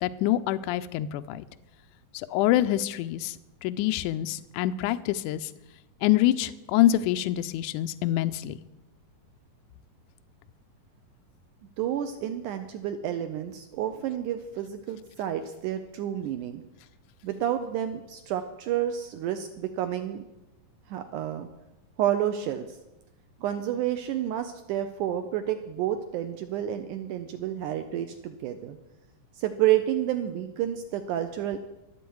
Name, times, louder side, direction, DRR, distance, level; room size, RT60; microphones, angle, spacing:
voice 1, 0.0-1.4 2.1-3.4 3.6-5.5 6.0-8.6, left 13 dB, 80° left, 10 dB, 1.8 m, -25 dB
voice 2, 11.8-16.6 17.2-20.2 20.9-21.5 22.0-22.7 23.4-28.8 29.4-31.6, right 11 dB, 80° right, 8 dB, 1.9 m, -30 dB
23.5 x 8.0 x 4.7 m, 0.96 s
omnidirectional pair, 4.1 m